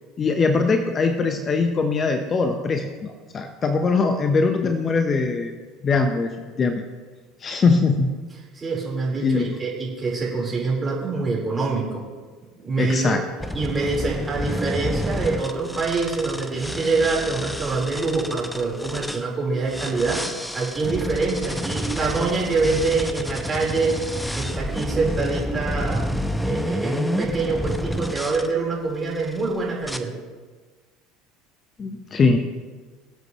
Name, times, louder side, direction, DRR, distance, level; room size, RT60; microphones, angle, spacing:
voice 1, 0.2-5.5 5.8-6.8 7.4-8.1 9.2-9.6 12.8-13.2 31.8-32.4, left 4 dB, 35° left, 6 dB, 1.0 m, -21 dB
voice 2, 8.5-12.0 12.6-13.1 13.5-24.0 24.3-26.0 26.4-30.1, right 3 dB, 25° right, -3 dB, 4.3 m, -25 dB
sound 1, 13.4-19.2 19.7-28.5 29.1-29.4 29.8-30.0, equal, 5° left, 0.9 m, -29 dB
23.0 x 8.0 x 3.2 m, 1.4 s
hypercardioid pair, 70°, 0 cm